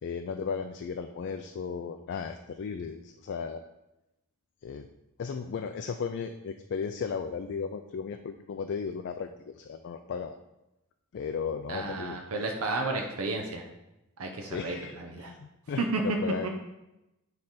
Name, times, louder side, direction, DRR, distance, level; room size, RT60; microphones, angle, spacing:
voice 1, 0.0-3.6 4.6-4.9 5.2-10.4 11.1-12.2 14.4-16.5, left 5 dB, 50° left, 6 dB, 0.3 m, -35 dB
voice 2, 11.7-13.6 14.2-15.3 15.8-16.0 16.4-16.5, right 3 dB, 70° right, 2 dB, 0.8 m, -32 dB
9.5 x 3.3 x 4.2 m, 0.93 s
head